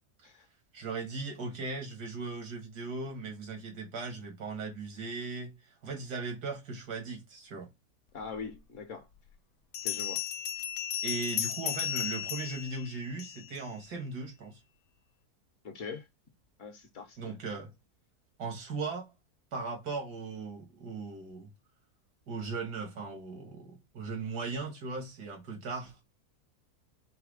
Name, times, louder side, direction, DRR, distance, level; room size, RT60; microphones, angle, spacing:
voice 1, 0.7-7.7 11.0-14.6 17.2-17.7 18.4-19.1 19.5-21.5 22.3-26.0, right 4 dB, 90° right, 2.2 m, -38 dB
voice 2, 8.1-9.1 9.8-10.2 10.6-10.7 15.6-16.1 16.6-17.4, left 5 dB, 55° left, 1.4 m, -42 dB
Bell, 8.5-8.6 9.7-13.6, left 10 dB, 70° left, 1.0 m, -35 dB
4.8 x 2.2 x 4.8 m
omnidirectional pair, 1.7 m